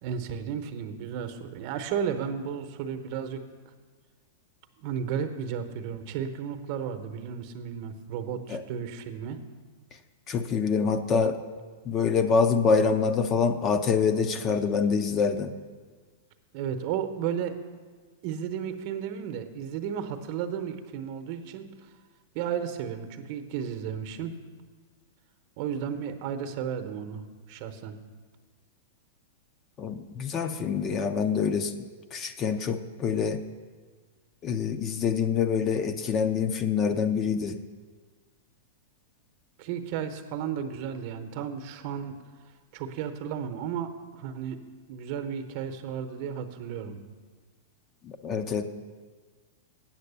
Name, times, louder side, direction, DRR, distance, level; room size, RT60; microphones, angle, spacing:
voice 1, 0.0-3.4 4.8-9.4 16.5-17.5 18.2-21.9 22.3-24.3 25.6-28.0 39.6-42.2 42.7-44.6 44.9-47.0, right 8 dB, 50° right, 8 dB, 0.9 m, -33 dB
voice 2, 10.3-11.4 11.8-15.5 29.8-31.7 32.1-33.4 34.4-37.6 48.0-48.7, left 5 dB, 30° left, 8 dB, 0.6 m, -26 dB
8.9 x 6.6 x 6.8 m, 1.5 s
hypercardioid pair, 125°, 0 cm